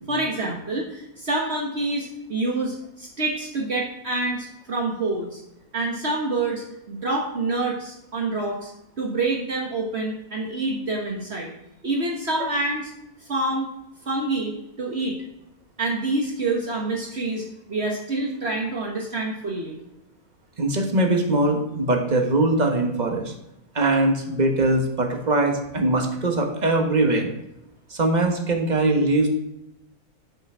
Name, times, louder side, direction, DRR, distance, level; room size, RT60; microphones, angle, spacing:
voice 1, 0.1-5.4 5.7-8.7 9.0-11.5 11.8-12.9 13.3-13.7 14.0-15.1 15.8-19.8, right 2 dB, 45° right, -1 dB, 1.5 m, -27 dB
voice 2, 20.6-23.3 23.7-27.3 27.9-29.3, right 2 dB, 30° right, 3 dB, 1.3 m, -21 dB
7.9 x 5.8 x 6.1 m, 0.84 s
omnidirectional pair, 1.6 m